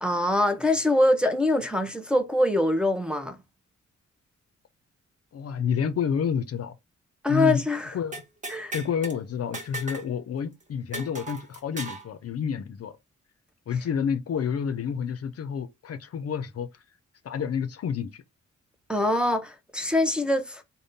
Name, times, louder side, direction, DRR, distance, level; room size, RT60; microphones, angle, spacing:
voice 1, 0.0-3.4 7.2-7.9 8.5-8.7 18.9-20.6, left 1 dB, 5° right, 0.6 m, -24 dB
voice 2, 5.3-6.8 7.3-7.6 7.9-8.2 8.7-12.9 13.7-16.7 17.2-18.2, left 7 dB, 55° left, 0.5 m, -29 dB
sound 1, 8.1-9.2 9.5-10.1 10.4-10.5 10.9-12.1, right 2 dB, 25° right, 0.9 m, -36 dB
3.5 x 2.1 x 4.0 m
cardioid pair, 90°, 29 cm